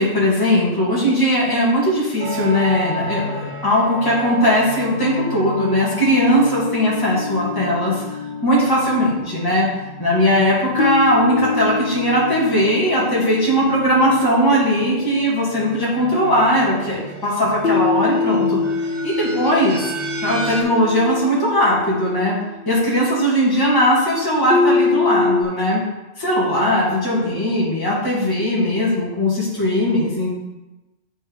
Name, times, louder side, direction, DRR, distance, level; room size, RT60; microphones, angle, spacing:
voice 1, 0.0-8.0 8.4-9.7 10.0-18.6 19.0-19.8 20.2-22.4 22.7-25.8 26.2-30.3, equal, 20° left, -6 dB, 1.9 m, -19 dB
sound 1, 2.2-20.6, right 1 dB, 70° right, 1.3 m, -34 dB
sound 2, 6.1-9.4 10.8-16.2 17.6-23.1 24.5-25.4, left 4 dB, 60° left, 0.6 m, -25 dB
9.7 x 4.4 x 3.5 m, 1.0 s
omnidirectional pair, 1.2 m